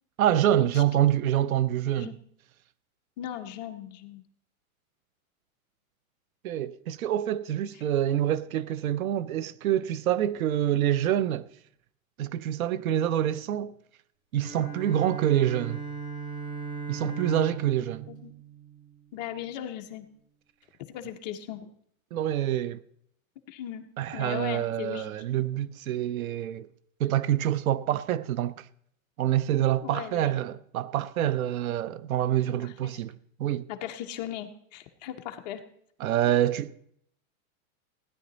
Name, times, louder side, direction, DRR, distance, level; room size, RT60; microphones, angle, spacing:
voice 1, 0.2-2.2 6.4-11.5 12.2-13.7 14.3-15.8 16.9-18.1 22.1-22.8 24.0-26.7 27.0-28.7 29.2-33.7 36.0-36.8, right 11 dB, 75° right, 0.7 m, -26 dB
voice 2, 3.2-4.2 18.1-18.3 19.1-20.0 20.9-21.7 23.5-23.8 24.1-25.1 29.8-30.3 32.6-32.9 33.7-35.6, left 11 dB, 30° left, 0.7 m, -38 dB
Bowed string instrument, 14.4-19.3, right 4 dB, 35° right, 5.3 m, -38 dB
16.5 x 10.0 x 3.9 m
supercardioid pair, 170°, 42 cm